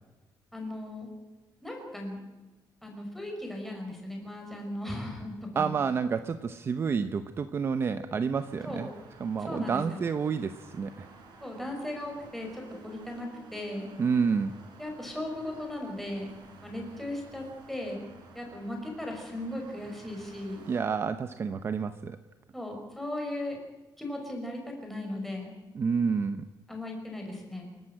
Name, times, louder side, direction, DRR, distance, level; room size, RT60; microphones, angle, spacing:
voice 1, 0.5-1.1 1.6-2.2 2.8-5.8 8.6-8.9 9.4-10.0 11.4-13.9 14.8-16.4 16.6-18.1 18.3-20.6 22.5-23.6 24.0-25.5 26.7-27.7, left 1 dB, 5° left, 0 dB, 5.5 m, -37 dB
voice 2, 5.5-8.9 9.2-11.1 14.0-14.5 20.7-22.2 25.7-26.4, right 5 dB, 35° right, 10 dB, 0.8 m, -29 dB
sound 1, 8.3-20.8, right 4 dB, 75° right, 5.6 m, -53 dB
28.5 x 12.5 x 8.9 m, 1.2 s
cardioid pair, 165°, 8 cm